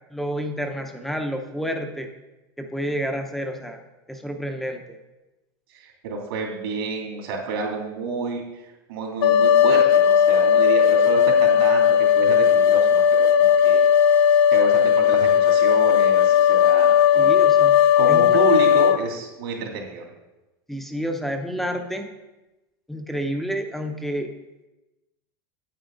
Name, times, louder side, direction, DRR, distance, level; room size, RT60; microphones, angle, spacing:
voice 1, 0.1-2.1 2.6-3.8 4.1-5.0 17.2-17.8 18.1-18.4 20.7-22.1 22.9-24.3, equal, ahead, 5 dB, 0.7 m, -29 dB
voice 2, 5.7-13.8 14.5-17.3 18.0-20.1, right 4 dB, 85° right, 0 dB, 2.8 m, -30 dB
sound 1, 9.2-19.0, left 8 dB, 80° left, 0.5 m, -16 dB
8.9 x 8.4 x 3.9 m, 1.0 s
supercardioid pair, 135°, 12 cm